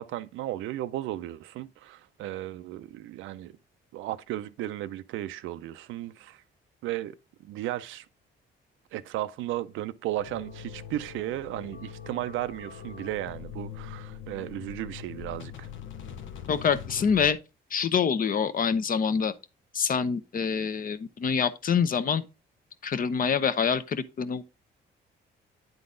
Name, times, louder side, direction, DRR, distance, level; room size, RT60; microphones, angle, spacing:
voice 1, 0.0-3.5 3.9-6.4 6.8-7.1 7.4-8.1 8.9-15.7, right 14 dB, 85° right, 0.4 m, -35 dB
sound 1, 10.2-17.3, left 8 dB, 75° left, 0.8 m, -42 dB
voice 2, 16.5-17.4 17.7-19.3 19.7-22.2 22.8-24.4, left 6 dB, 45° left, 0.7 m, -26 dB
9.5 x 3.9 x 3.7 m
cardioid pair, 90°, 20 cm